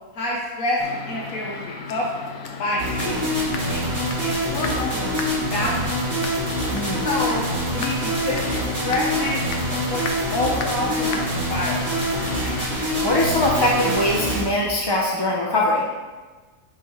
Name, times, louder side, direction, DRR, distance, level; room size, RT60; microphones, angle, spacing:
voice 1, 0.1-0.8 1.1-2.3 2.6-5.8 7.0-7.5 7.7-9.6 9.9-10.0 10.3-11.8, left 2 dB, 80° left, -4 dB, 1.3 m, -28 dB
sound 1, 0.8-12.6, left 4 dB, 65° left, 1.0 m, -36 dB
sound 2, 2.8-14.4, equal, 70° right, 2.6 m, -25 dB
voice 2, 6.7-7.1 13.0-15.8, left 1 dB, 35° left, -2 dB, 0.4 m, -21 dB
9.8 x 3.9 x 3.0 m, 1.3 s
omnidirectional pair, 1.4 m